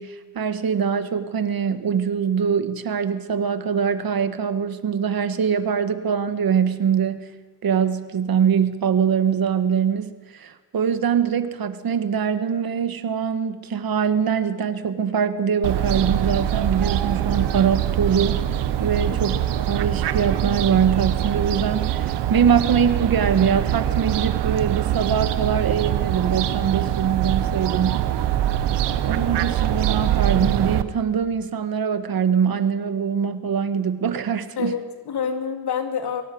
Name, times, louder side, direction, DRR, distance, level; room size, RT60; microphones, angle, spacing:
voice 1, 0.0-7.2 7.6-18.5 18.8-28.1 29.0-34.8, right 7 dB, 60° right, 10 dB, 1.8 m, -23 dB
Fowl, 15.6-30.8, right 11 dB, 85° right, 1.3 m, -23 dB
voice 2, 19.1-19.4 34.6-36.2, left 7 dB, 70° left, 5 dB, 3.1 m, -28 dB
23.5 x 15.5 x 7.9 m, 1.3 s
cardioid pair, 70°, 40 cm